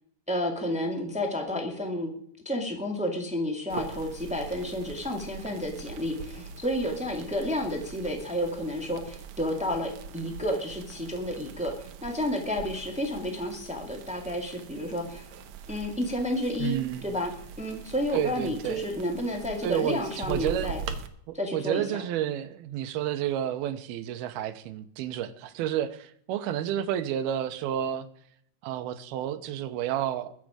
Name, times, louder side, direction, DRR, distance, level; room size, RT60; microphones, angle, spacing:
voice 1, 0.3-2.1 2.4-15.3 15.7-17.3 17.6-20.8 21.3-22.0, left 1 dB, 10° right, 2 dB, 0.4 m, -31 dB
sound 1, 3.7-21.1, right 7 dB, 70° right, 1.8 m, -42 dB
voice 2, 16.6-17.1 18.1-18.8 19.6-20.8 21.3-28.1 28.6-30.3, right 11 dB, 85° right, 11 dB, 2.7 m, -30 dB
21.5 x 7.6 x 5.0 m, 0.66 s
omnidirectional pair, 4.5 m